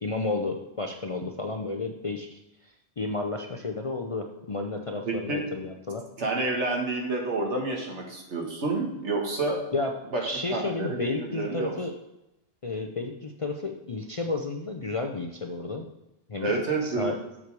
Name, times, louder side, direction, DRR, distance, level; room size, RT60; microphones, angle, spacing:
voice 1, 0.0-2.4 3.0-6.0 9.7-9.9 10.2-11.9 12.6-15.9 16.3-16.5 16.8-17.2, left 3 dB, 40° left, 3 dB, 0.5 m, -32 dB
voice 2, 5.0-5.4 6.2-9.6 10.1-11.7 16.4-17.1, right 2 dB, 70° right, 1 dB, 1.9 m, -29 dB
7.5 x 6.8 x 4.7 m, 0.89 s
omnidirectional pair, 1.2 m